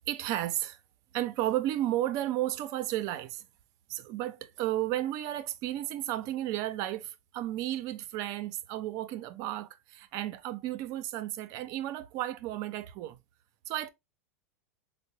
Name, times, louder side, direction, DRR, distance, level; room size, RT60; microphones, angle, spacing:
voice 1, 0.1-0.8 1.1-3.5 3.9-13.2 13.7-13.9, right 13 dB, 50° right, 0.4 m, -33 dB
4.4 x 2.0 x 2.8 m
hypercardioid pair, 115°, 8 cm